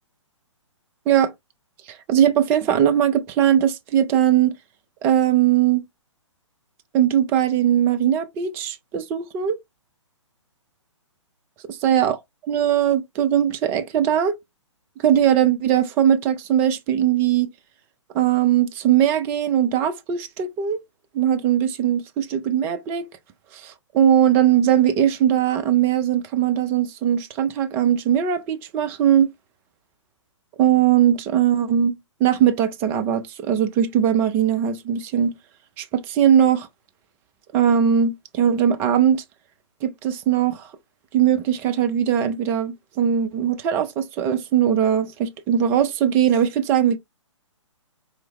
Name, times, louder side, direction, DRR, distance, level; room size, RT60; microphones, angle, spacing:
voice 1, 1.9-4.5 5.0-5.8 6.9-9.6 11.8-12.2 12.5-14.3 15.0-17.5 18.1-20.8 21.1-23.1 23.5-29.3 30.6-35.3 35.8-36.7 37.5-39.2 39.8-40.7 41.1-47.0, right 9 dB, 15° right, 0.4 m, -20 dB
4.3 x 3.1 x 3.1 m
figure-of-eight pair, 125°, 16 cm